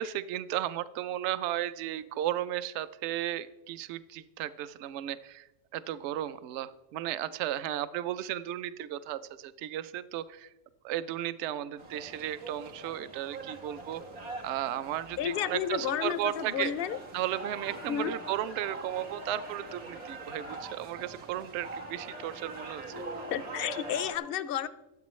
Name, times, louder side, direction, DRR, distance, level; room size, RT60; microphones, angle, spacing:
voice 1, 0.0-5.5 5.7-10.5 10.8-14.0 14.4-16.7 17.1-23.0, right 12 dB, 65° right, 14 dB, 0.8 m, -34 dB
sound 1, 11.8-24.2, right 2 dB, 90° right, 2.3 m, -43 dB
voice 2, 15.2-17.0 17.9-18.1 23.3-24.7, left 10 dB, 65° left, 15 dB, 0.6 m, -31 dB
23.5 x 8.1 x 3.1 m, 1.1 s
omnidirectional pair, 1.5 m